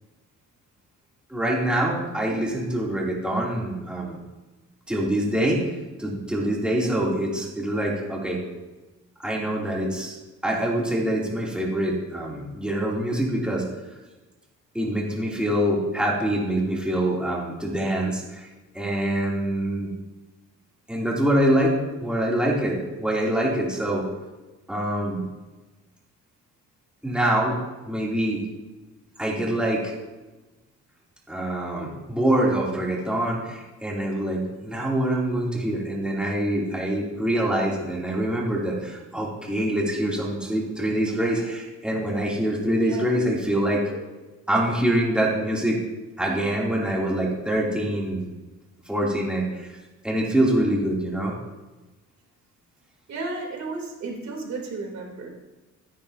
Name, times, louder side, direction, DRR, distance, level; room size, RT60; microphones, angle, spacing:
voice 1, 1.3-4.2 4.9-5.6 6.0-8.4 9.2-10.1 10.4-13.7 14.7-18.5 18.7-19.9 20.9-21.7 22.0-24.1 24.7-25.2 27.0-27.6 27.9-28.4 29.2-29.9 31.3-43.8 44.5-45.8 46.2-48.2 48.9-49.7 50.0-51.3, right 1 dB, 5° right, -4 dB, 2.9 m, -25 dB
voice 2, 42.8-43.1 53.1-55.3, right 3 dB, 65° right, 0 dB, 3.4 m, -33 dB
14.0 x 10.0 x 2.8 m, 1.2 s
cardioid pair, 90°, 30 cm